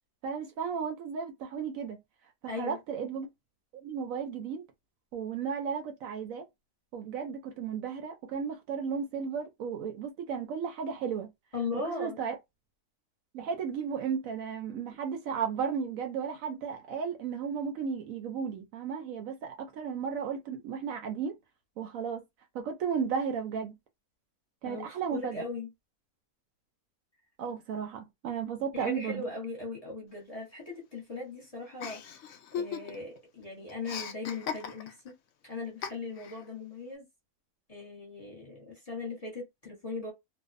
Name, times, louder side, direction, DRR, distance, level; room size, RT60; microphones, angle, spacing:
voice 1, 0.2-2.0 2.6-3.3 3.8-4.6 5.1-6.4 6.9-11.3 12.0-12.3 13.3-21.4 21.8-22.2 22.5-23.7 24.6-25.5 27.4-29.2, right 6 dB, 70° right, 0.9 m, -34 dB
voice 2, 2.5-2.8 11.5-12.2 24.6-25.7 28.7-35.2 35.4-37.1 37.7-40.1, left 3 dB, 30° left, 0.9 m, -39 dB
Chuckle chortle, 31.8-33.2 33.4-35.1 35.8-36.4, left 7 dB, 65° left, 0.8 m, -38 dB
2.5 x 2.2 x 2.5 m
omnidirectional pair, 1.6 m